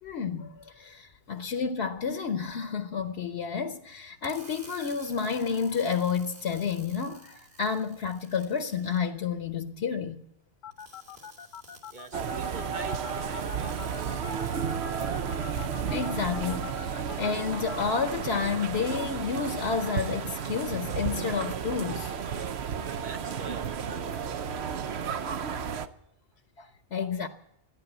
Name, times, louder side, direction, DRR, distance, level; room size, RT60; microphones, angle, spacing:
voice 1, 0.0-10.2 15.6-22.1 26.6-27.3, left 6 dB, 80° left, 1.1 m, -30 dB
sound 1, 4.2-9.0 10.7-17.8, right 2 dB, 70° right, 3.1 m, -54 dB
sound 2, 10.6-17.8, left 9 dB, 55° left, 0.8 m, -43 dB
voice 2, 11.9-14.3 22.9-24.6, right 4 dB, 50° right, 1.1 m, -45 dB
sound 3, 12.1-25.9, right 7 dB, 85° right, 1.0 m, -33 dB
14.5 x 10.5 x 7.9 m
omnidirectional pair, 1.1 m